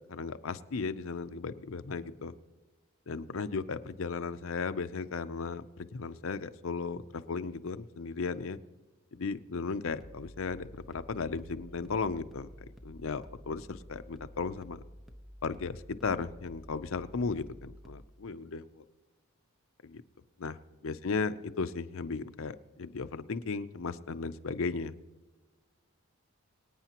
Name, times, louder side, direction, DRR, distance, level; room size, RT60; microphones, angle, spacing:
voice 1, 0.1-2.3 3.1-8.6 9.1-12.5 12.8-14.8 15.4-18.8 19.8-20.0 20.4-20.6 20.8-24.9, left 4 dB, 65° left, 11 dB, 0.6 m, -36 dB
sound 1, 9.9-18.1, equal, ahead, 0.8 m, -51 dB
25.0 x 9.0 x 2.9 m, 1.3 s
head